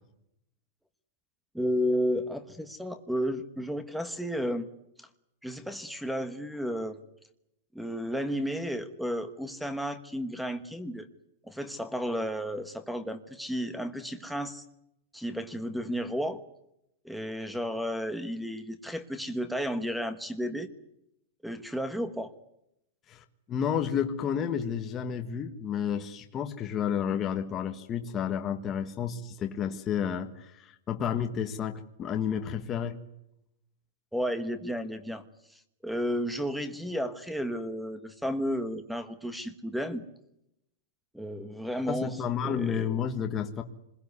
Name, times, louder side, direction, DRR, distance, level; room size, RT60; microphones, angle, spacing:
voice 1, 1.5-4.7 5.0-5.1 5.4-7.0 7.7-11.1 11.5-14.6 15.1-16.4 17.0-20.7 21.4-22.3 34.1-35.2 35.8-40.0 41.1-42.2 42.4-42.9, equal, ahead, 12 dB, 1.2 m, -32 dB
voice 2, 23.1-33.0 41.9-43.6, left 8 dB, 20° left, 6 dB, 1.4 m, -31 dB
27.0 x 21.5 x 9.6 m, 0.83 s
supercardioid pair, 170°, 0 cm